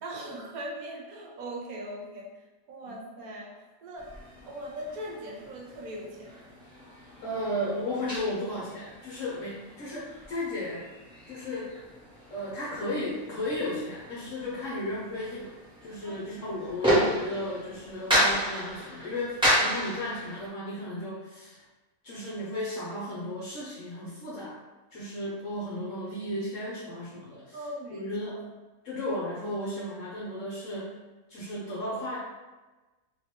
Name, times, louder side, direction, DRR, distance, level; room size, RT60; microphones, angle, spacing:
voice 1, 0.0-2.3 2.7-3.5 3.8-4.1 4.4-6.6 16.0-16.1 27.5-28.4, right 1 dB, 70° right, -2 dB, 1.1 m, -40 dB
sound 1, 4.0-20.5, equal, 5° right, 1.2 m, -32 dB
voice 2, 7.2-10.8 11.3-11.7 12.3-15.5 15.8-21.6 22.0-24.6 24.9-27.6 27.9-28.4 28.8-30.9 31.3-32.2, left 1 dB, 60° left, -6 dB, 1.0 m, -34 dB
2.9 x 2.9 x 3.1 m, 1.2 s
omnidirectional pair, 1.6 m